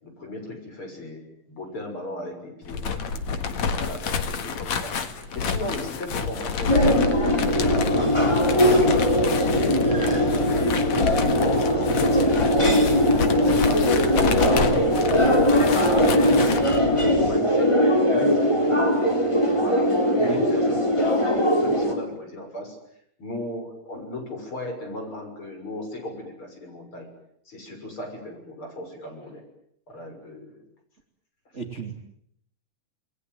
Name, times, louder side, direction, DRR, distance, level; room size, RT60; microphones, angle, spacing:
voice 1, 0.0-2.8 3.1-7.0 7.4-8.9 9.4-13.9 14.2-16.5 17.0-17.7 18.0-19.1 19.6-22.8 23.2-27.1 27.5-29.4 29.9-30.6, left 1 dB, 40° left, 4 dB, 7.4 m, -36 dB
sound 1, 2.6-16.8, left 5 dB, 60° left, 2.9 m, -29 dB
sound 2, 6.7-21.9, equal, 10° left, 4.1 m, -20 dB
sound 3, 7.5-17.4, left 6 dB, 75° left, 0.8 m, -31 dB
voice 2, 31.5-31.9, right 4 dB, 20° right, 4 dB, 2.7 m, -34 dB
28.5 x 21.0 x 9.6 m, 0.71 s
omnidirectional pair, 3.8 m